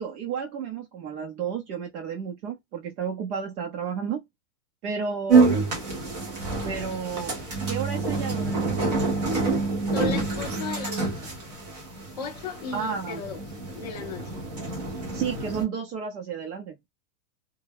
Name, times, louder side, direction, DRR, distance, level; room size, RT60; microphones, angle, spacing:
voice 1, 0.0-4.2 4.8-5.5 6.6-7.4 7.7-9.0 12.7-13.2 15.1-16.8, right 6 dB, 65° right, 0.8 m, -32 dB
sound 1, 5.3-15.6, right 4 dB, 30° right, 0.5 m, -27 dB
voice 2, 9.9-11.3 12.2-13.4 13.7-14.4, left 4 dB, 30° left, 0.4 m, -35 dB
2.2 x 2.0 x 3.3 m
supercardioid pair, 170°, 48 cm